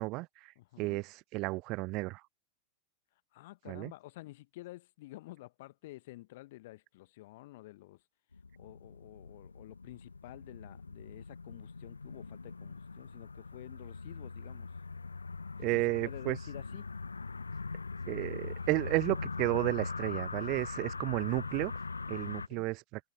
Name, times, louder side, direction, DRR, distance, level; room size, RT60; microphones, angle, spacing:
voice 1, 0.0-2.2 3.7-3.9 15.6-16.4 18.1-21.7 22.1-22.8, right 23 dB, 40° right, 0.5 m, -33 dB
voice 2, 0.6-1.0 3.3-8.0 8.6-14.7 15.7-16.9 20.3-21.0 22.5-22.7, left 18 dB, 50° left, 1.3 m, -50 dB
sound 1, 8.3-22.5, left 4 dB, 80° left, 0.9 m, -41 dB
open air
figure-of-eight pair, 90°, 0 cm